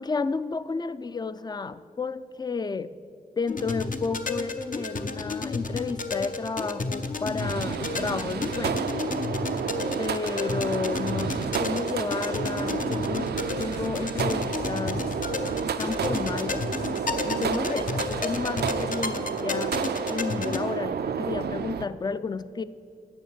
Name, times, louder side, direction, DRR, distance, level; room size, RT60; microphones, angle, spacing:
voice 1, 0.0-2.9 3.4-8.8 10.0-13.3 13.6-15.1 15.8-16.7 17.2-19.8 20.1-22.6, left 4 dB, 25° left, 15 dB, 0.4 m, -32 dB
sound 1, 3.5-20.6, left 3 dB, 55° left, 0.7 m, -32 dB
sound 2, 7.4-21.9, right 7 dB, 90° right, 0.4 m, -31 dB
sound 3, 11.4-19.1, left 4 dB, 90° left, 0.6 m, -46 dB
10.0 x 7.2 x 6.6 m, 2.4 s
wide cardioid pair, 70°, 16 cm